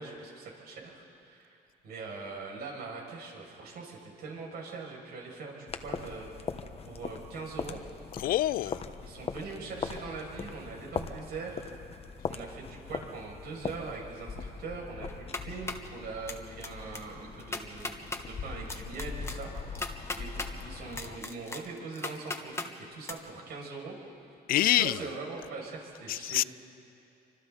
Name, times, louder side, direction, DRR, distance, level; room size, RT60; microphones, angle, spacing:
voice 1, 0.0-1.6 1.8-6.3 6.8-7.8 8.6-11.7 12.3-24.0 24.3-26.5, right 4 dB, 70° right, 6.6 m, -42 dB
sound 1, 5.7-21.2, left 5 dB, 35° left, 1.2 m, -41 dB
voice 2, 8.2-8.8 24.5-24.9 26.2-26.4, left 14 dB, 60° left, 0.4 m, -25 dB
sound 2, 15.1-15.9 16.3-16.7 16.9-17.0 17.4-18.2 18.7-20.5 20.9-22.7 23.0-23.1, left 3 dB, 15° left, 1.5 m, -37 dB
28.5 x 25.5 x 4.1 m
cardioid pair, 110°, 17 cm